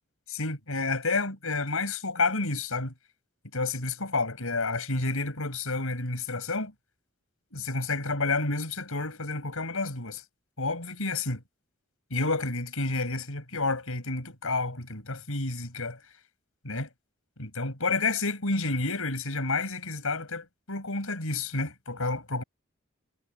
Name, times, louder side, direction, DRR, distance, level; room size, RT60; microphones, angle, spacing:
voice 1, 0.3-2.9 3.5-6.7 7.5-10.2 10.6-11.4 12.1-16.0 16.6-16.9 17.4-22.4, left 3 dB, 90° left, 6.1 m, -30 dB
head